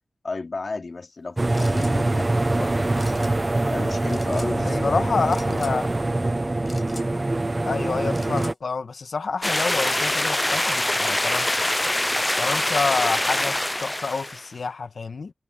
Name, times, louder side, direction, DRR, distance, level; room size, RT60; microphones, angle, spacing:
voice 1, 0.2-3.1 3.7-5.2 6.2-6.4, left 3 dB, 60° left, 3.6 m, -33 dB
sound 1, 1.4-8.5, right 2 dB, 35° right, 0.8 m, -24 dB
sound 2, 1.5-1.9 3.0-3.3 4.1-4.5 5.3-5.7 6.7-7.1 8.1-8.6 9.5-9.9 10.9-11.8 12.1-13.0, left 2 dB, 40° left, 7.1 m, -43 dB
voice 2, 4.6-5.9 7.6-11.5 12.4-15.3, left 4 dB, 80° left, 1.5 m, -28 dB
sound 3, 9.4-14.4, left 1 dB, 20° left, 0.5 m, -24 dB
cardioid pair, 55°, 0 cm